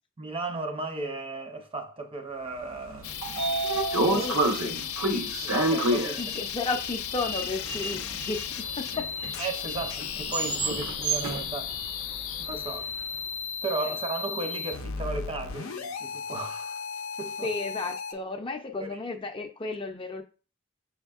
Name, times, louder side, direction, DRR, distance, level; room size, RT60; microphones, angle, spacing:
voice 1, 0.2-4.2 4.7-4.9 5.2-6.2 9.4-11.8 12.5-12.9 13.6-16.8 17.2-17.5 18.8-19.0, right 3 dB, 25° right, 0.6 m, -35 dB
Sliding door, 2.8-12.9, right 2 dB, 80° right, 0.9 m, -30 dB
sound 1, 3.0-18.1, left 7 dB, 90° left, 0.5 m, -35 dB
voice 2, 4.0-4.8 5.6-9.1 13.8-14.0 17.4-20.2, left 3 dB, 25° left, 0.4 m, -34 dB
6.3 x 3.5 x 2.3 m
head